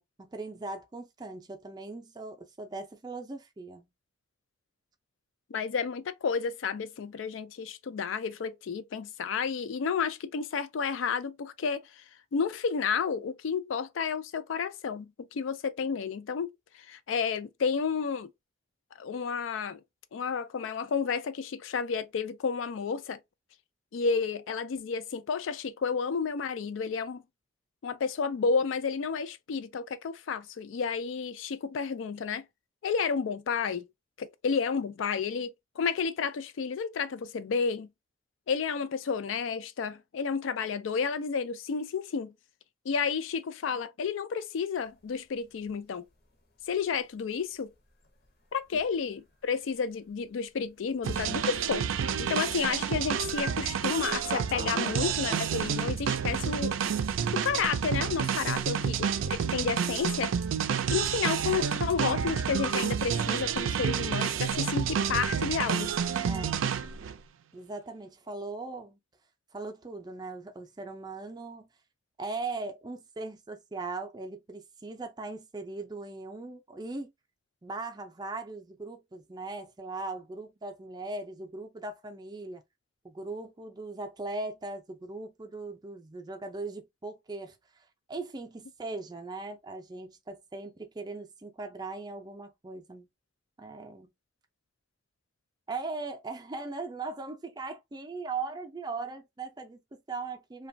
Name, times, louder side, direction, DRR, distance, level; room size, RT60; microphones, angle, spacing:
voice 1, 0.0-3.9 58.4-58.8 66.2-66.7 67.5-69.0 69.5-71.7 72.2-77.1 77.6-82.6 83.0-87.6 88.1-93.1 93.6-94.1 95.7-100.7, right 3 dB, 20° right, 0.4 m, -39 dB
voice 2, 5.5-12.0 12.3-16.5 16.9-18.3 19.0-19.8 20.1-23.2 23.9-27.2 27.8-32.4 32.8-33.9 34.2-37.9 38.5-42.3 42.9-46.0 46.7-47.7 48.5-56.8 57.3-60.3 60.9-66.0, left 5 dB, 80° left, 0.4 m, -31 dB
sound 1, 44.8-59.3, left 3 dB, 55° left, 0.8 m, -46 dB
sound 2, 51.0-67.2, right 7 dB, 90° right, 0.4 m, -29 dB
2.9 x 2.3 x 2.6 m
head